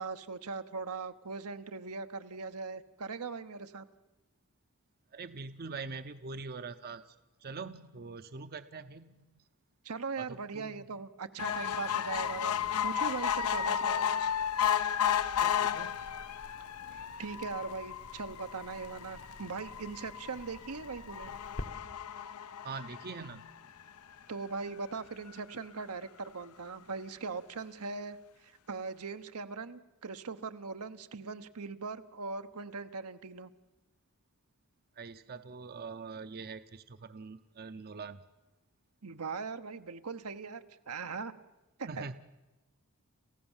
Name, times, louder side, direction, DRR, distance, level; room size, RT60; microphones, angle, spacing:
voice 1, 0.0-3.9 9.8-14.1 16.9-21.3 24.3-28.2 28.4-33.5 39.0-41.3 41.8-42.0, right 4 dB, 85° right, 8 dB, 1.1 m, -40 dB
voice 2, 5.1-9.4 10.2-10.8 15.4-16.2 22.6-23.5 35.0-38.2 41.9-42.1, right 4 dB, 45° right, 11 dB, 0.7 m, -44 dB
sound 1, 11.4-24.0 24.6-24.7 24.9-25.0 25.3-25.4, left 9 dB, 85° left, 0.8 m, -33 dB
Crackle, 12.1-21.7, left 1 dB, 70° left, 1.4 m, -51 dB
28.5 x 15.5 x 7.3 m, 1.1 s
head